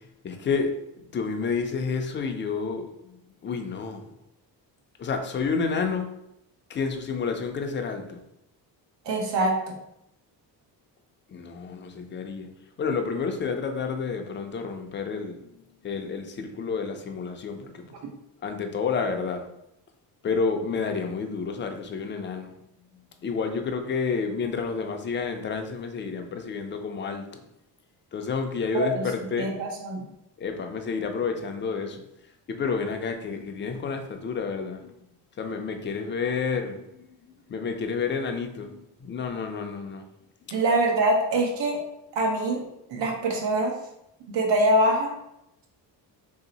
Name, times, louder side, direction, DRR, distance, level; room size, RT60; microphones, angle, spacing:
voice 1, 0.0-4.1 5.0-6.1 6.7-8.2 11.3-12.5 12.8-18.0 18.4-19.5 20.2-22.6 23.2-27.4 28.1-29.6 30.4-32.0 32.5-34.9 35.4-40.0 40.5-40.6, left 5 dB, 30° left, 5 dB, 0.4 m, -30 dB
voice 2, 9.0-9.7 28.7-29.0 29.4-30.0 40.5-41.8 42.1-42.6 42.9-43.7 44.3-45.1, right 1 dB, 85° right, 0 dB, 1.0 m, -24 dB
3.3 x 2.8 x 3.9 m, 0.82 s
cardioid pair, 145°, 42 cm